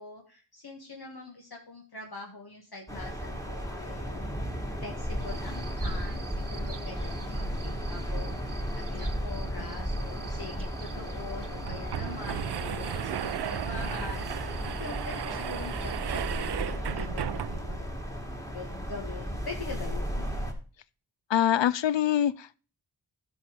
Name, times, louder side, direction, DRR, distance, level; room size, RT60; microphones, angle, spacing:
voice 1, 0.0-4.4 4.8-14.5 14.8-16.6 16.9-18.3 18.5-20.3, left 3 dB, 55° left, 1.8 m, -43 dB
sound 1, 2.9-20.5, equal, 5° left, 2.3 m, -34 dB
sound 2, 5.2-16.5, right 6 dB, 45° right, 1.1 m, -50 dB
sound 3, 10.2-10.3 10.6-10.7 11.4-17.8, right 11 dB, 65° right, 0.5 m, -35 dB
voice 2, 21.3-22.6, left 10 dB, 75° left, 0.5 m, -24 dB
12.0 x 5.4 x 5.1 m
cardioid pair, 45°, 44 cm